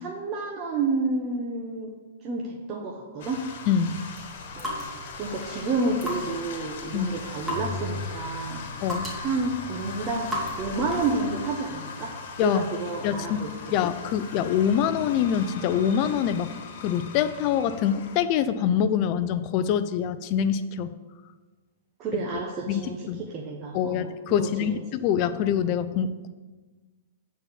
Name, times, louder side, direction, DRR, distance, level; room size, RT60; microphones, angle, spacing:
voice 1, 0.0-1.9 2.2-3.4 4.5-4.8 5.1-8.6 9.2-10.3 10.6-12.1 12.4-13.5 22.0-24.8, right 3 dB, 30° right, -1 dB, 1.1 m, -30 dB
sound 1, 3.2-18.2, left 4 dB, 60° left, 1.5 m, -40 dB
voice 2, 3.7-4.0 6.9-7.1 8.8-9.1 12.4-12.7 13.0-13.4 13.7-16.5 16.8-20.9 22.3-23.2 23.7-26.3, left 8 dB, 40° left, 12 dB, 0.5 m, -25 dB
sound 2, 4.2-11.2, left 1 dB, 10° right, 2.3 m, -37 dB
sound 3, 5.3-5.6 6.9-8.6 10.4-11.7 14.3-16.1, equal, 80° right, 2.3 m, -41 dB
8.9 x 4.3 x 7.2 m, 1.3 s
hypercardioid pair, 140°, 0 cm